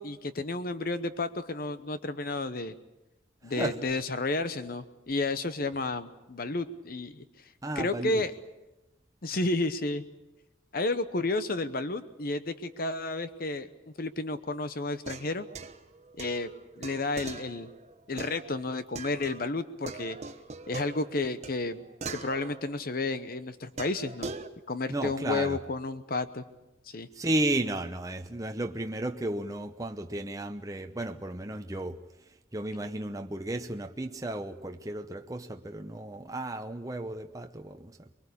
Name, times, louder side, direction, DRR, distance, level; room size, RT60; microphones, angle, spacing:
voice 1, 0.0-2.7 3.4-7.2 7.8-8.3 9.2-10.0 10.7-13.7 14.0-15.5 16.2-16.5 16.8-17.7 18.1-20.2 20.7-21.8 22.1-24.3 24.7-26.4 26.9-27.1, left 2 dB, 50° left, 0.9 m, -31 dB
voice 2, 3.4-3.8 7.6-8.2 24.9-25.6 27.1-32.0 32.5-38.1, right 1 dB, 20° right, 0.8 m, -33 dB
sound 1, 14.9-19.5 19.9-23.1 23.8-24.5, right 3 dB, 35° right, 1.2 m, -42 dB
24.0 x 22.5 x 8.4 m
head